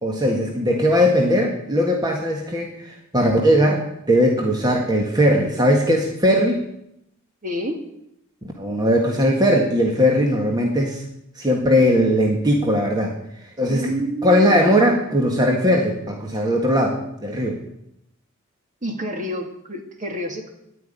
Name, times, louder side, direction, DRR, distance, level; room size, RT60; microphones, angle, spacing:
voice 1, 0.0-6.7 8.6-11.0 11.3-13.1 13.6-13.9 14.2-17.6, equal, 20° right, 0 dB, 1.7 m, -19 dB
voice 2, 7.4-7.8 13.7-14.6 18.8-20.5, equal, 40° right, 3 dB, 2.2 m, -28 dB
10.0 x 9.6 x 10.0 m, 0.81 s
head